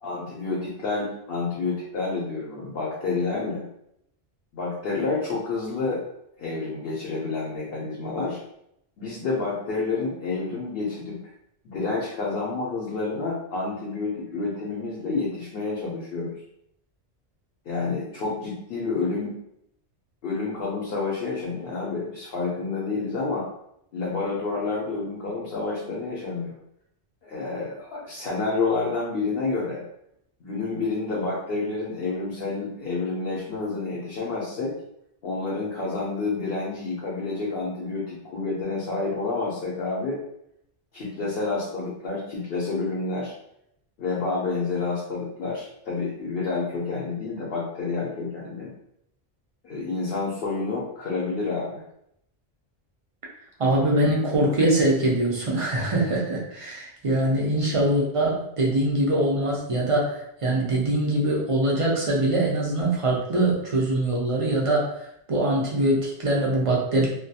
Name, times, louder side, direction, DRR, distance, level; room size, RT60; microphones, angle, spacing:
voice 1, 0.0-3.6 4.5-6.0 6.4-8.4 9.0-11.2 11.6-16.3 17.7-19.3 20.2-23.5 23.9-26.5 27.2-29.8 30.4-34.7 35.2-40.2 40.9-43.3 44.0-48.7 49.6-51.8, left 3 dB, 65° left, -5 dB, 0.8 m, -29 dB
voice 2, 53.6-64.9 65.3-67.1, right 1 dB, 45° right, -3 dB, 0.5 m, -23 dB
2.2 x 2.2 x 2.7 m, 0.74 s
omnidirectional pair, 1.1 m